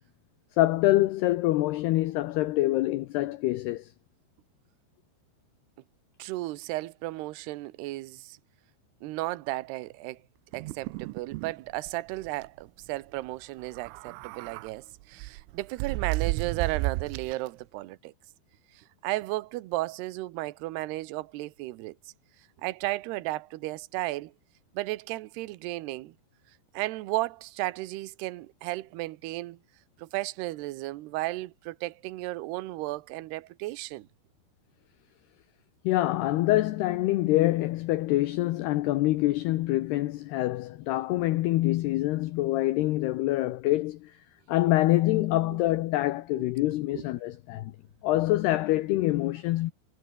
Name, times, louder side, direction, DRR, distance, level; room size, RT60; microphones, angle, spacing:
voice 1, 0.6-3.9 35.8-44.1 44.5-47.7 48.0-49.7, left 17 dB, 80° left, 2.5 m, -25 dB
voice 2, 6.2-8.4 9.0-10.2 10.5-18.1 18.7-22.0 22.6-24.3 24.7-26.1 26.7-29.6 30.0-34.1 46.4-46.5 46.9-47.0, right 18 dB, 70° right, 2.7 m, -34 dB
sound 1, 10.5-11.5 11.9-12.0 12.3-12.5 13.7-14.7 15.2-17.5, right 22 dB, 90° right, 3.2 m, -32 dB
omnidirectional pair, 5.6 m